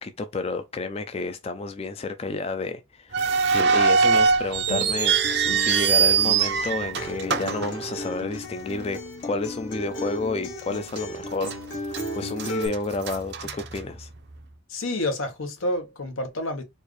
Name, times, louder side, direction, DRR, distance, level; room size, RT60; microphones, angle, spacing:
voice 1, 0.0-14.1, left 3 dB, 30° left, 0.4 m, -31 dB
sound 1, 3.1-8.5 8.7-8.8 9.6-9.8 10.3-10.4 11.0-11.6 11.9-14.4, right 6 dB, 55° right, 0.5 m, -23 dB
Acoustic guitar, 4.7-12.7, equal, 65° left, 1.2 m, -35 dB
voice 2, 14.7-16.6, left 1 dB, 85° left, 1.1 m, -29 dB
4.4 x 2.5 x 3.2 m
head